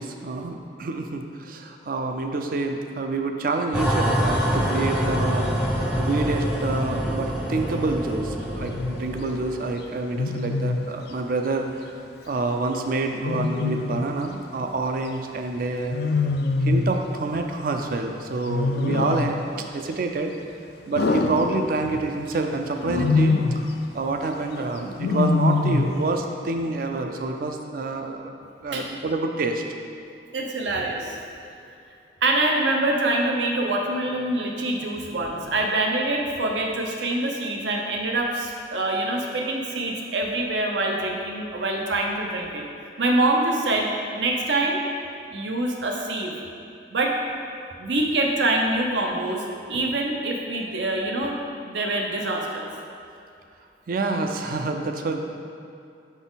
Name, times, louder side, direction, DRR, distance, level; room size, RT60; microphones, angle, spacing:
voice 1, 0.0-5.5 5.9-16.0 16.6-20.3 20.9-28.3 28.6-29.6 53.9-55.4, right 3 dB, 50° right, 4 dB, 0.4 m, -27 dB
sound 1, 3.7-9.7, equal, 5° right, 0.6 m, -25 dB
Wild animals, 8.6-8.9 10.2-10.9 13.2-14.1 15.9-17.0 18.5-19.4 21.0-22.1 22.8-23.7 25.0-26.0, left 3 dB, 60° left, 0.4 m, -23 dB
voice 2, 30.3-31.2 32.2-42.6 43.0-44.8 45.3-46.3 46.9-47.1 47.8-51.4 51.6-52.7, right 2 dB, 85° right, 0 dB, 0.7 m, -25 dB
6.0 x 4.1 x 3.9 m, 2.6 s
head